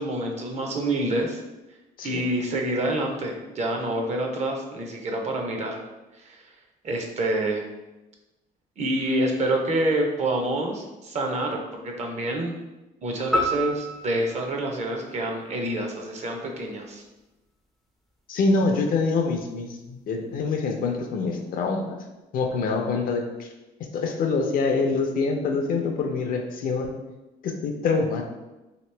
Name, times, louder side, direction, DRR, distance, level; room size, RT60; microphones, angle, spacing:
voice 1, 0.0-1.4 2.0-5.8 6.2-6.4 6.8-7.6 8.8-12.6 13.0-17.0, right 1 dB, 40° right, 2 dB, 0.6 m, -27 dB
sound 1, 13.3-15.8, equal, ahead, 0.4 m, -30 dB
voice 2, 18.3-22.0 22.3-23.5 23.9-26.9 27.4-28.2, left 4 dB, 55° left, 3 dB, 0.5 m, -25 dB
2.9 x 2.7 x 3.2 m, 1.0 s
cardioid pair, 110°, 17 cm